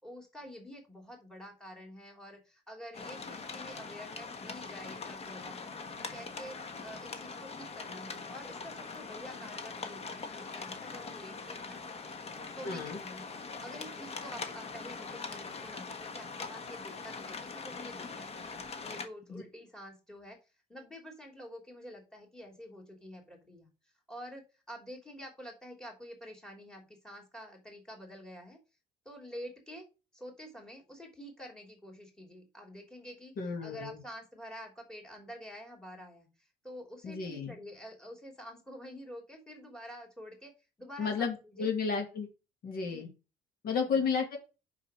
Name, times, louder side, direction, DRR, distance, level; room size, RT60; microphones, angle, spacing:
voice 1, 0.0-6.6 6.8-11.8 12.5-18.5 18.8-20.4 20.7-23.7 24.1-28.6 29.0-29.9 30.1-33.3 33.6-40.5 40.8-41.7 42.8-43.1 43.7-44.0, equal, 5° left, 2 dB, 3.0 m, -48 dB
sound 1, 2.9-19.1, left 4 dB, 35° left, 1.3 m, -42 dB
voice 2, 12.6-13.0 19.3-19.4 33.4-34.0 37.0-37.5 41.0-42.3 42.6-43.1 43.6-44.4, left 5 dB, 60° left, 3 dB, 2.3 m, -32 dB
5.7 x 5.4 x 6.1 m, 0.30 s
cardioid pair, 110°, 17 cm